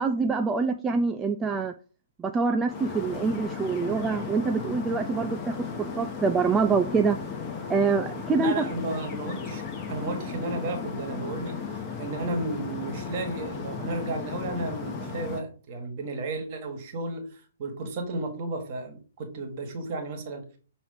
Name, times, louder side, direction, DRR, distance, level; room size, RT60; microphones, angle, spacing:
voice 1, 0.0-1.7 2.2-7.2 7.7-8.6, right 4 dB, 15° right, 6 dB, 0.3 m, -25 dB
sound 1, 2.7-15.4, left 5 dB, 20° left, 1.0 m, -35 dB
voice 2, 8.4-20.4, right 2 dB, 40° right, 4 dB, 1.5 m, -33 dB
6.3 x 3.0 x 4.9 m, 0.39 s
figure-of-eight pair, 120°, 0 cm